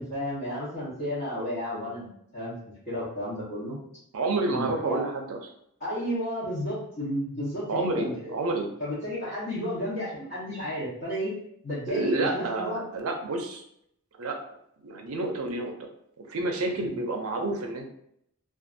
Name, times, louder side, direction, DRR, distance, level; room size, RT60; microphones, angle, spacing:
voice 1, 0.0-2.5 2.8-3.8 4.5-5.0 5.8-8.3 8.8-11.3 11.6-12.8 16.7-17.0, equal, 45° left, -12 dB, 1.0 m, -32 dB
voice 2, 4.1-5.4 7.7-8.7 11.9-13.6 14.2-14.4 14.8-15.9 16.2-17.9, right 2 dB, 75° right, 3 dB, 0.5 m, -29 dB
2.6 x 2.4 x 2.5 m, 0.74 s
head